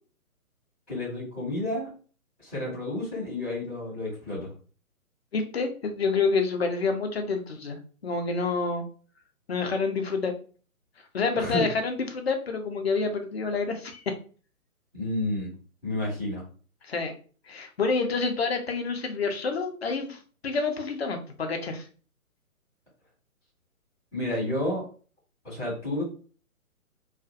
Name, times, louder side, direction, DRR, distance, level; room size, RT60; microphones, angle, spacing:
voice 1, 0.9-1.9 2.4-4.5 11.3-11.7 14.9-15.5 15.8-16.4 24.1-24.8 25.4-26.0, left 1 dB, ahead, -15 dB, 0.7 m, -30 dB
voice 2, 5.3-8.8 9.5-10.3 11.1-14.2 16.8-17.1 17.5-21.9, left 4 dB, 45° left, 5 dB, 0.6 m, -28 dB
2.4 x 2.3 x 2.6 m, 0.39 s
figure-of-eight pair, 140°, 43 cm